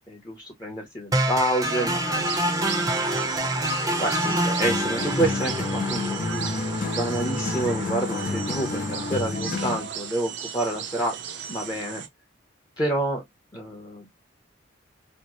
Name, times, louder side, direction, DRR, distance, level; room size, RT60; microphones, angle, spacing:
voice 1, 0.1-3.2 4.0-11.2 11.5-12.0 12.8-13.2 13.5-14.1, right 1 dB, 20° left, 0.8 m, -29 dB
sound 1, 1.1-9.1, right 1 dB, 20° right, 0.6 m, -28 dB
sound 2, 2.2-12.1, right 7 dB, 60° right, 0.6 m, -36 dB
sound 3, 4.6-10.0, left 3 dB, 40° left, 0.4 m, -30 dB
4.3 x 2.0 x 3.0 m
head